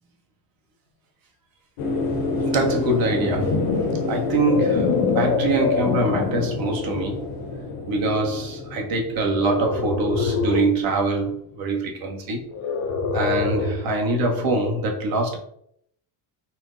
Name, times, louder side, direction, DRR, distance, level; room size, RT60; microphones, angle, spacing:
sound 1, 1.8-11.0 11.3-11.4, left 3 dB, 70° left, 0.9 m, -29 dB
voice 1, 2.5-3.7 4.1-7.3 7.9-12.4 13.1-15.4, right 2 dB, 45° right, 0.9 m, -24 dB
sound 2, 3.0-6.6 7.2-7.5 9.3-10.8 12.5-14.0, left 5 dB, 40° left, 0.4 m, -25 dB
4.2 x 2.0 x 3.7 m
cardioid pair, 160°, 49 cm